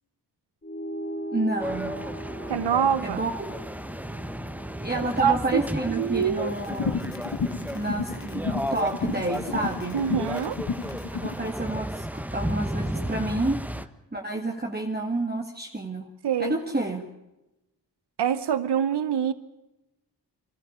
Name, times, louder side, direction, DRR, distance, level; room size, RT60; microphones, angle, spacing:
sound 1, 0.6-5.4, right 1 dB, 25° left, 2.4 m, -39 dB
voice 1, 1.3-1.9 3.0-3.6 4.8-7.1 7.7-10.0 11.2-16.1 16.4-17.0, right 2 dB, 25° right, 1 dB, 2.1 m, -29 dB
sound 2, 1.6-13.9, equal, 5° right, 1.3 m, -34 dB
voice 2, 2.5-3.2 4.9-5.6 5.9-6.5 9.9-10.6 16.2-16.5 18.2-19.3, right 8 dB, 85° right, 14 dB, 0.9 m, -25 dB
sound 3, 6.6-11.4, left 5 dB, 85° left, 1.8 m, -31 dB
26.0 x 13.0 x 8.7 m, 0.96 s
cardioid pair, 45°, 40 cm